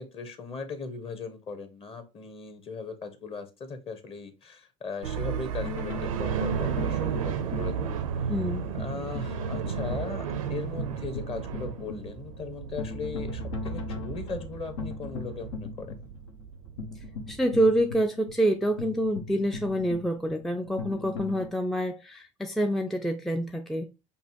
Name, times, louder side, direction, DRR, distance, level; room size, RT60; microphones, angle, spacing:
voice 1, 0.0-7.9 8.8-16.1, left 4 dB, 35° left, 1.1 m, -38 dB
sound 1, 5.0-17.5, right 7 dB, 85° right, 0.6 m, -33 dB
sound 2, 5.6-21.5, left 4 dB, 75° left, 0.8 m, -40 dB
voice 2, 8.3-8.6 17.0-23.9, right 1 dB, ahead, 0.4 m, -27 dB
5.3 x 2.5 x 2.8 m
hypercardioid pair, 80°, 17 cm